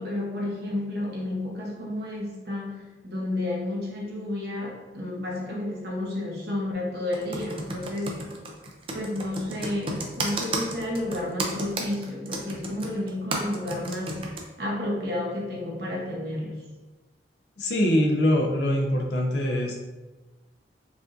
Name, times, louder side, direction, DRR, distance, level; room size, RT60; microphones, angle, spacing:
voice 1, 0.0-8.3 8.9-14.2 14.6-16.6, left 1 dB, 60° right, -2 dB, 0.9 m, -31 dB
Computer keyboard, 7.1-14.4, right 2 dB, 30° right, 0.4 m, -32 dB
voice 2, 17.6-19.8, left 1 dB, 70° left, 2 dB, 0.5 m, -23 dB
4.7 x 2.5 x 2.5 m, 1.2 s
head